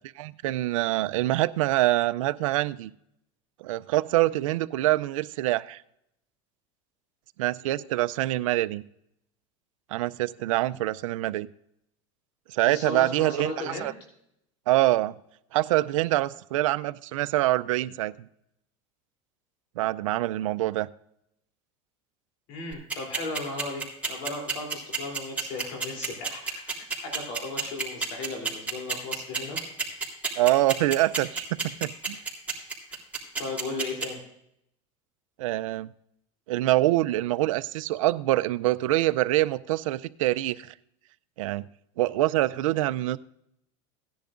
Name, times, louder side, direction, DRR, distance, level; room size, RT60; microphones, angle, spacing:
voice 1, 0.2-2.9 3.6-5.8 7.4-8.8 9.9-11.5 12.5-13.9 14.7-15.2 15.5-18.2 19.8-20.9 30.4-32.2 35.4-35.9 36.5-40.7 41.4-41.7 42.0-43.2, right 16 dB, 90° right, 15 dB, 0.5 m, -25 dB
voice 2, 12.7-13.9 22.5-29.6 32.9-33.0 33.4-34.2, left 2 dB, 65° left, 1 dB, 3.2 m, -36 dB
sound 1, 22.7-34.1, right 5 dB, 10° right, 3.3 m, -29 dB
17.0 x 10.5 x 2.5 m, 0.76 s
supercardioid pair, 120°, 16 cm